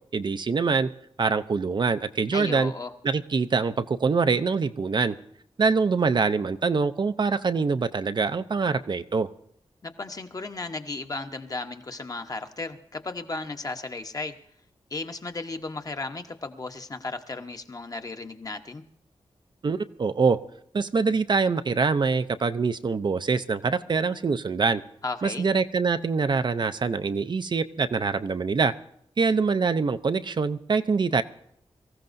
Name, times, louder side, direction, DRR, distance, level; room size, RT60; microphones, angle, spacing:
voice 1, 0.1-0.9 1.2-2.7 3.0-5.2 5.6-9.3 19.6-20.4 20.7-24.8 25.2-28.7 29.2-31.2, right 4 dB, 45° right, 10 dB, 0.5 m, -24 dB
voice 2, 2.3-2.9 9.8-14.3 14.9-18.8 25.0-25.5, left 3 dB, 35° left, 6 dB, 1.0 m, -35 dB
24.0 x 15.0 x 2.6 m, 0.72 s
wide cardioid pair, 135°, 11 cm